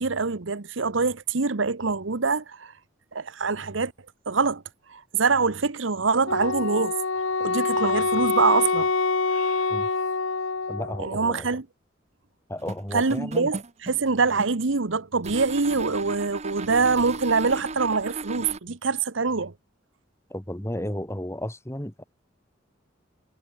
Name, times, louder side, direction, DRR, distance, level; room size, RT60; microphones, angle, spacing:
voice 1, 0.0-2.7 3.1-3.9 4.3-4.6 4.9-7.0 7.4-8.9 9.3-9.6 11.0-11.7 12.9-19.5, right 4 dB, 80° right, 1.1 m, -24 dB
Wind instrument woodwind instrument, 6.3-11.1, left 4 dB, 85° left, 1.4 m, -25 dB
voice 2, 10.7-11.5 12.5-13.5 20.3-22.0, left 1 dB, 15° left, 2.2 m, -33 dB
sound 1, 12.6-14.7 15.2-18.6, right 3 dB, 35° right, 1.1 m, -36 dB
head